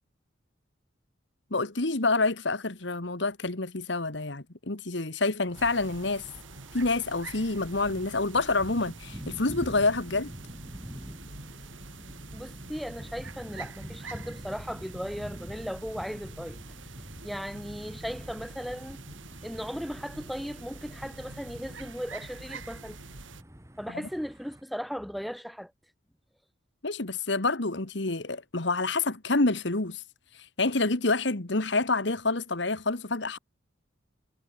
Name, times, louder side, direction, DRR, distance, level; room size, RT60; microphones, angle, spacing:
voice 1, 1.5-6.2 6.7-10.3 26.8-30.0 30.6-33.4, left 3 dB, 65° left, 1.8 m, -27 dB
sound 1, 5.5-24.6, equal, 15° right, 2.9 m, -47 dB
sound 2, 5.5-23.4, right 3 dB, 80° right, 6.6 m, -46 dB
voice 2, 12.3-16.6 17.2-19.0 19.4-23.0 23.8-25.7, equal, ahead, 6.7 m, -37 dB
head